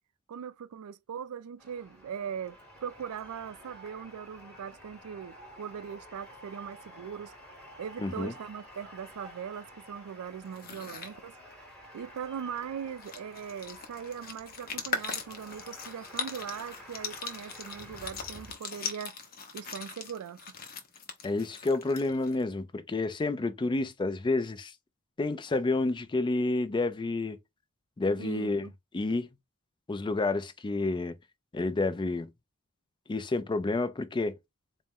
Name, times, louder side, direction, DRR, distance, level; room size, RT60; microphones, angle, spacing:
voice 1, 0.3-7.3 7.8-11.4 11.9-19.2 19.5-20.4 28.2-28.7 29.1-29.2, right 7 dB, 80° right, 0.4 m, -40 dB
sound 1, 1.6-18.5, equal, 5° left, 1.1 m, -51 dB
voice 2, 8.0-8.3 21.2-24.7 25.2-27.4 28.0-28.6 28.9-29.3 29.9-31.1 31.5-32.3 33.1-34.4, left 3 dB, 20° left, 0.4 m, -29 dB
sound 2, 10.5-11.1 12.6-12.7 12.9-22.4, left 5 dB, 45° left, 0.7 m, -40 dB
4.1 x 2.0 x 3.6 m
head